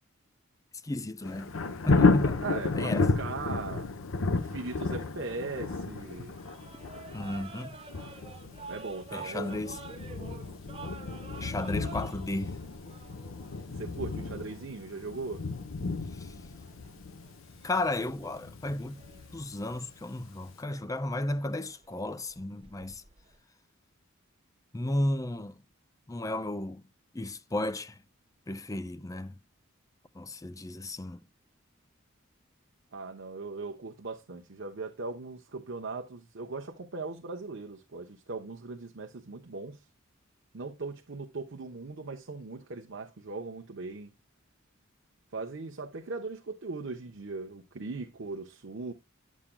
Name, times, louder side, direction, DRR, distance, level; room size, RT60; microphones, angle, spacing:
voice 1, 0.8-1.6 1.8-2.4 2.7-3.1 7.1-7.8 9.1-9.8 11.4-12.6 16.1-16.3 17.6-19.0 19.3-23.0 24.7-25.5 26.1-26.8 27.1-28.0 28.5-29.3 30.1-31.2, left 1 dB, 15° left, 0.5 m, -34 dB
Thunder, 1.2-20.0 20.5-20.6, left 3 dB, 75° left, 0.8 m, -32 dB
voice 2, 2.4-3.9 4.3-6.4 8.7-9.7 13.7-15.4 32.9-39.8 40.5-44.1 45.3-48.9, right 3 dB, 60° right, 0.8 m, -39 dB
sound 1, 4.5-23.4, right 4 dB, 30° right, 1.1 m, -51 dB
9.9 x 7.3 x 2.2 m
head